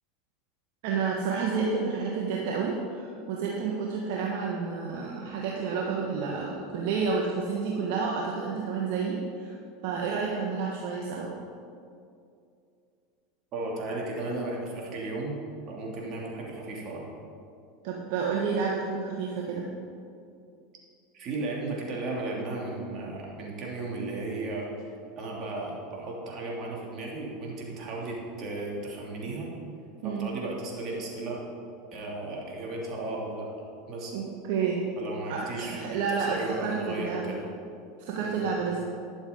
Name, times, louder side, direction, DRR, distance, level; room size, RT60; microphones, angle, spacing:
voice 1, 0.8-9.5 9.8-11.3 17.8-19.7 30.0-30.3 34.1-34.8 35.3-37.2 38.1-38.8, right 5 dB, 65° right, -2 dB, 1.3 m, -30 dB
voice 2, 13.5-15.4 15.7-17.0 21.1-24.9 25.2-29.5 30.0-31.4 31.9-33.5 33.9-34.1 35.0-35.8 36.2-37.5 38.2-38.4, right 2 dB, 45° right, -2 dB, 3.0 m, -35 dB
11.5 x 7.2 x 5.3 m, 2.5 s
hypercardioid pair, 95°, 0 cm